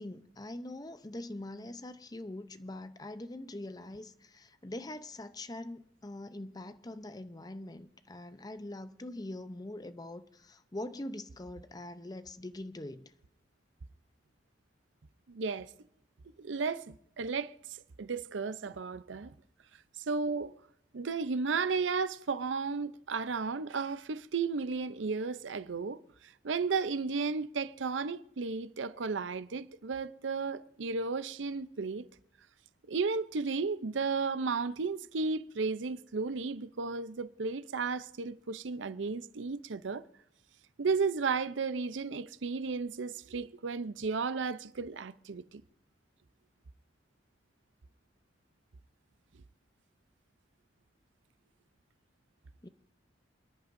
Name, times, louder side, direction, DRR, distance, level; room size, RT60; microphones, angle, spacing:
voice 1, 0.0-13.1 52.6-52.7, left 1 dB, 20° left, 0.7 m, -43 dB
voice 2, 15.3-15.7 16.4-17.5 18.0-19.3 20.1-20.5 20.9-26.0 26.4-32.1 32.9-40.0 40.8-45.6, right 4 dB, 85° right, 0.6 m, -34 dB
28.5 x 10.5 x 2.6 m
head